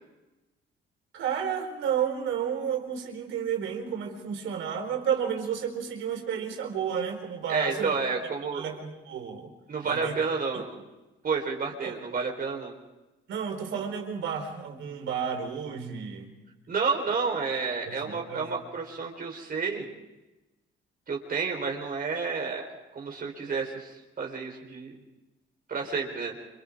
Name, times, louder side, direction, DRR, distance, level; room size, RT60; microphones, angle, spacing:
voice 1, 1.1-8.0 8.5-9.5 9.8-10.1 10.5-10.6 11.8-11.9 13.3-16.3 17.9-18.5, right 8 dB, 80° right, 3 dB, 4.4 m, -31 dB
voice 2, 7.5-8.7 9.7-10.8 11.2-12.7 16.7-19.9 21.1-25.0 25.7-26.3, right 5 dB, 45° right, 1 dB, 4.4 m, -30 dB
29.5 x 25.0 x 3.7 m, 1.0 s
cardioid pair, 90°, 20 cm